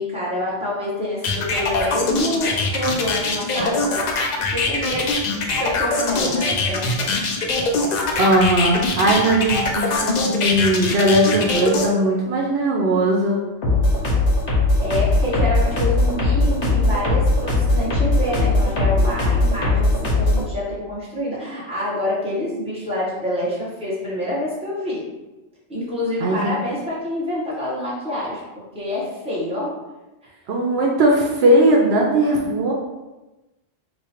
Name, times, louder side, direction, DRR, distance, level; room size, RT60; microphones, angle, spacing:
voice 1, 0.0-3.8 4.5-5.3 5.6-7.5 14.8-25.0 25.7-29.7 30.2-30.3, left 1 dB, 5° right, -8 dB, 1.1 m, -27 dB
sound 1, 1.2-11.9, left 3 dB, 55° left, 0.5 m, -22 dB
voice 2, 8.2-13.4 26.2-26.5 30.5-32.7, right 1 dB, 70° right, -1 dB, 0.8 m, -18 dB
sound 2, 13.6-20.4, left 2 dB, 80° left, 1.2 m, -19 dB
3.1 x 2.2 x 4.2 m, 1.1 s
omnidirectional pair, 1.1 m